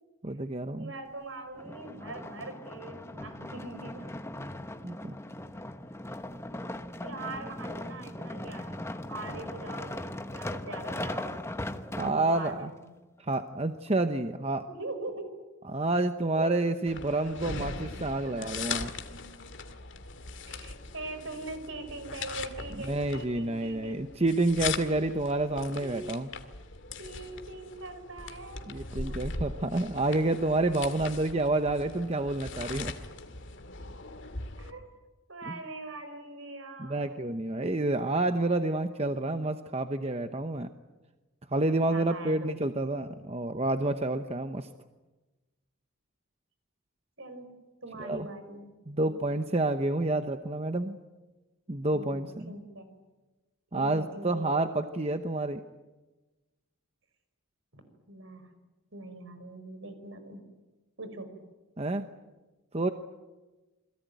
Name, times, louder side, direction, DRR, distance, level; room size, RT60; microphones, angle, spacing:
voice 1, 0.2-0.9 4.8-5.1 12.0-12.7 13.2-14.7 15.7-18.9 22.8-26.3 28.7-32.9 35.5-35.6 36.8-40.7 41.5-44.7 48.0-48.3 48.9-51.0 51.7-52.5 53.7-55.6 61.8-62.1 62.7-62.9, right 2 dB, 30° right, 8 dB, 0.9 m, -29 dB
voice 2, 0.8-4.1 7.0-11.5 12.0-12.9 14.7-15.3 16.4-16.6 18.2-18.6 20.5-24.1 25.8-26.0 27.0-28.6 29.1-29.2 34.6-34.8 35.3-37.1 39.0-39.4 41.9-42.6 47.2-47.5 47.8-48.7 49.0-49.4 51.9-52.9 53.7-54.5 57.7-57.8 58.1-58.5 58.9-60.4 61.0-61.3, right 2 dB, 60° right, 8 dB, 5.1 m, -42 dB
sound 1, 1.6-12.6 13.2-13.3, left 1 dB, 10° left, 1.0 m, -39 dB
sound 2, 16.9-34.7, left 4 dB, 55° left, 2.2 m, -40 dB
28.5 x 22.0 x 9.3 m, 1.2 s
head